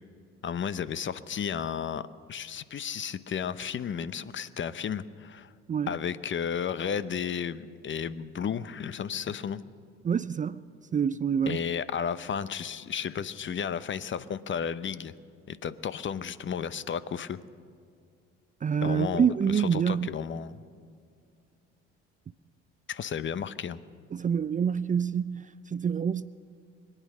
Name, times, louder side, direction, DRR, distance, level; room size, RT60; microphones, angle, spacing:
voice 1, 0.4-5.5 5.9-9.6 11.5-15.1 15.5-17.4 18.8-20.6 22.9-23.8, left 7 dB, 40° left, 0.7 m, -33 dB
voice 2, 10.0-10.6 10.9-11.6 18.6-20.1 24.1-26.2, right 7 dB, 25° right, 0.4 m, -27 dB
25.5 x 9.1 x 6.3 m
hypercardioid pair, 65°, 31 cm